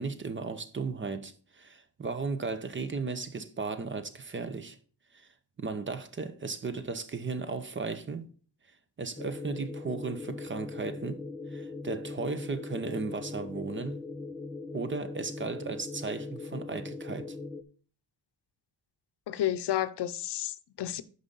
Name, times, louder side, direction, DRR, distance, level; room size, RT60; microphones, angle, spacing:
voice 1, 0.0-4.8 5.1-5.3 5.6-8.3 9.0-11.2 11.5-14.0 14.7-17.4, right 4 dB, 30° right, 0.7 m, -35 dB
sound 1, 9.2-17.6, left 3 dB, 10° left, 0.4 m, -40 dB
voice 2, 19.3-21.0, left 12 dB, 80° left, 0.7 m, -31 dB
9.4 x 5.5 x 3.9 m
wide cardioid pair, 175°, 39 cm